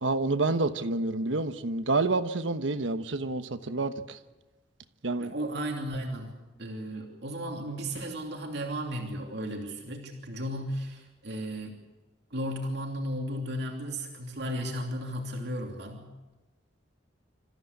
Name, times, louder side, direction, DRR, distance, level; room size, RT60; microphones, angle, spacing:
voice 1, 0.0-4.2 5.0-5.3, right 3 dB, 80° right, 1.2 m, -28 dB
voice 2, 5.2-11.8 12.3-16.1, equal, 60° right, 2.9 m, -35 dB
26.5 x 14.5 x 8.2 m
head